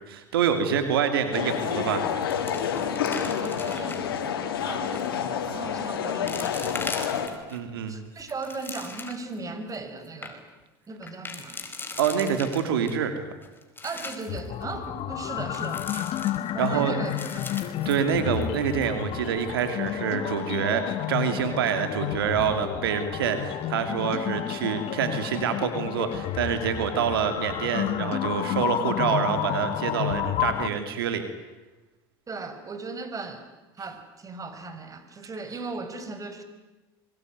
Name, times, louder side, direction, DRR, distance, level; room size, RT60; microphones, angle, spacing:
voice 1, 0.1-2.2 7.5-8.0 12.0-13.3 16.6-17.0 17.8-31.2, right 8 dB, 90° right, 8 dB, 2.7 m, -26 dB
sound 1, 1.3-7.3, left 8 dB, 85° left, 3.2 m, -29 dB
sound 2, 1.5-1.8 2.1-4.2 4.8-5.2 5.8-5.9 6.3-7.6 8.1-9.3 9.7-9.8 10.0-10.3 11.0-12.9 13.4-14.4 15.5-16.7 17.1-18.6 18.8-18.9 19.4-19.7, left 3 dB, 15° left, 4.7 m, -39 dB
voice 2, 3.0-4.0 4.5-7.2 7.9-10.5 10.9-11.7 13.8-15.9 16.5-17.7 32.3-33.5 33.8-36.4, right 3 dB, 30° right, 9 dB, 5.2 m, -37 dB
sound 3, 14.3-30.7, left 12 dB, 55° left, 1.4 m, -31 dB
26.0 x 23.0 x 9.4 m, 1.1 s
hypercardioid pair, 80°, 12 cm